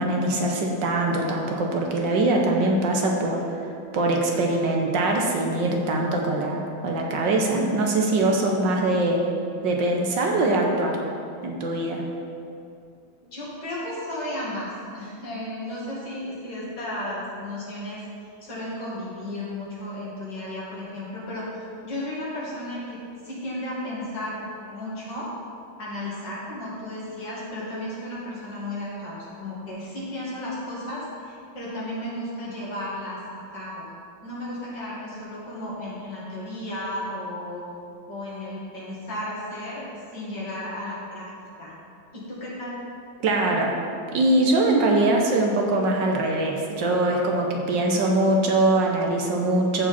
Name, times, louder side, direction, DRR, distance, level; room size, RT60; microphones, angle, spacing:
voice 1, 0.0-3.4 3.9-9.2 9.6-11.0 11.4-12.0 43.2-43.7 44.1-49.9, right 2 dB, 70° right, 0 dB, 1.6 m, -22 dB
voice 2, 13.3-18.0 18.4-25.3 25.8-33.9 34.2-37.7 38.1-41.3 41.6-41.7 42.1-42.8, left 1 dB, 60° left, -7 dB, 2.9 m, -34 dB
14.5 x 4.9 x 4.3 m, 2.5 s
omnidirectional pair, 2.1 m